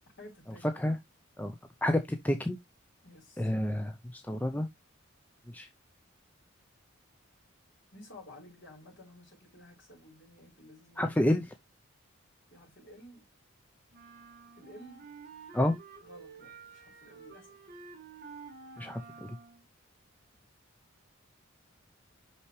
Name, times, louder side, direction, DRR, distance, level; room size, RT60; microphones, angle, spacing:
voice 1, 0.2-0.7 3.0-3.5 7.9-11.2 12.5-13.3 14.6-15.0 16.0-17.6, left 1 dB, 60° left, 4.7 m, -53 dB
voice 2, 1.8-2.6 3.4-4.7 5.5-5.7 11.0-11.5 15.5-15.8 18.8-19.4, left 1 dB, 10° left, 0.5 m, -29 dB
sound 1, 13.9-19.7, right 5 dB, 45° right, 1.9 m, -50 dB
5.7 x 5.7 x 3.2 m
head